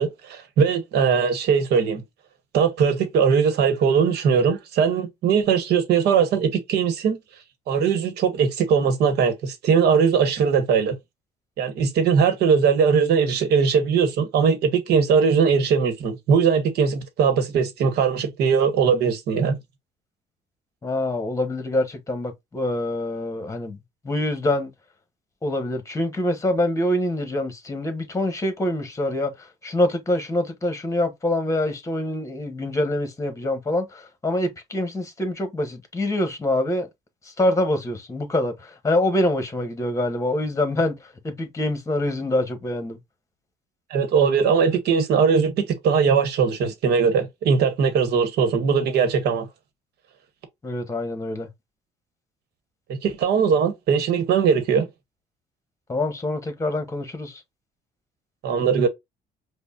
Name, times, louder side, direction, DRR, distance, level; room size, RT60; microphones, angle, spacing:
voice 1, 0.0-2.0 2.5-7.2 7.7-11.0 11.6-19.6 43.9-49.5 53.0-54.9 58.4-58.9, right 6 dB, 75° right, 1.1 m, -20 dB
voice 2, 20.8-23.8 24.0-24.7 25.4-36.9 37.2-41.0 41.2-43.0 50.6-51.5 55.9-57.4, left 1 dB, 20° left, 1.2 m, -25 dB
5.1 x 2.2 x 2.5 m
cardioid pair, 110°, 17 cm